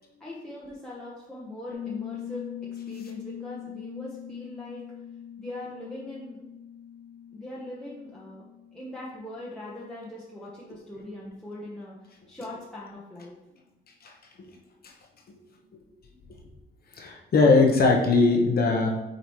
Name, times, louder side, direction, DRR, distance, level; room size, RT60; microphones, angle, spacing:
voice 1, 0.2-2.4 2.9-4.8 5.4-6.4 7.3-8.4 8.7-13.3, left 1 dB, 5° left, -7 dB, 1.2 m, -40 dB
Piano, 1.7-10.2, left 10 dB, 85° left, 0.7 m, -42 dB
voice 2, 17.0-18.9, left 3 dB, 50° left, 1 dB, 1.0 m, -21 dB
8.0 x 4.0 x 3.1 m, 1.0 s
cardioid pair, 90°, 20 cm